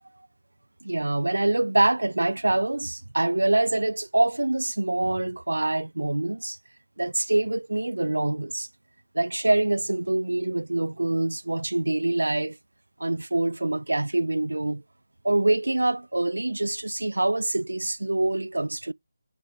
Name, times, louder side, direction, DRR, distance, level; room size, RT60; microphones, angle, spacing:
voice 1, 0.8-6.6 7.0-8.7 9.1-12.6 13.0-14.8 15.2-18.9, right 2 dB, 70° right, 0.3 m, -25 dB
9.0 x 3.2 x 4.8 m
figure-of-eight pair, 150°, 0 cm